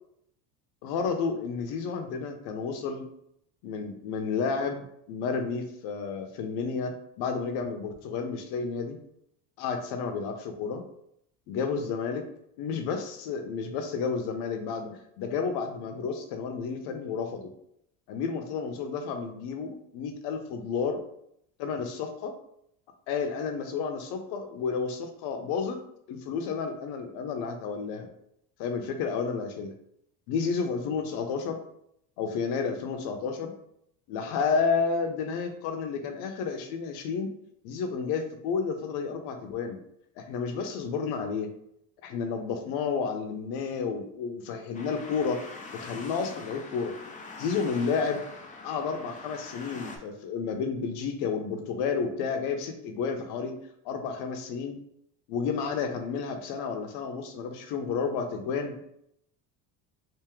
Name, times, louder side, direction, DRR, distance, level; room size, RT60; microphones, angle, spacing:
voice 1, 0.8-3.1 3.6-9.0 9.6-10.8 11.5-12.3 12.6-17.5 18.1-21.0 21.6-22.3 23.1-25.8 26.1-28.1 28.6-29.7 30.3-31.6 32.2-33.5 34.1-37.3 37.6-39.8 40.2-41.5 42.0-45.4 45.7-47.0 47.4-48.2 48.6-53.5 53.8-54.8 55.3-58.7, left 5 dB, 65° left, 5 dB, 0.8 m, -31 dB
sound 1, 44.7-50.0, left 3 dB, 20° left, 0.5 m, -43 dB
3.5 x 2.7 x 3.1 m, 0.73 s
supercardioid pair, 120°, 42 cm